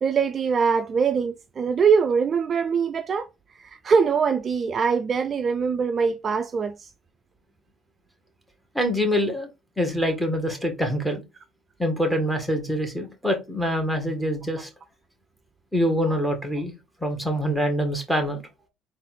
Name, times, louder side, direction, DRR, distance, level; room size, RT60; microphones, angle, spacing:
voice 1, 0.0-3.3 3.6-6.9, right 5 dB, 40° right, 0.4 m, -23 dB
voice 2, 8.8-9.5 9.8-11.2 11.8-14.7 15.7-16.7 17.0-18.4, equal, ahead, 1.7 m, -25 dB
4.1 x 2.5 x 4.2 m
hypercardioid pair, 75°, 0 cm